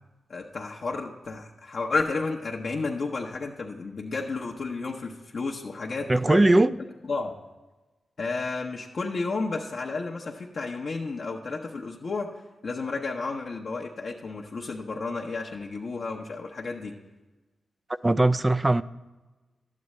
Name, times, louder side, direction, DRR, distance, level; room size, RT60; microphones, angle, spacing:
voice 1, 0.3-6.4 7.1-7.3 8.2-12.3 12.6-16.9, left 3 dB, 60° left, 0.8 m, -32 dB
voice 2, 6.1-6.8 18.0-18.8, right 2 dB, 25° right, 0.3 m, -20 dB
11.5 x 8.4 x 3.2 m
cardioid pair, 50°, 0 cm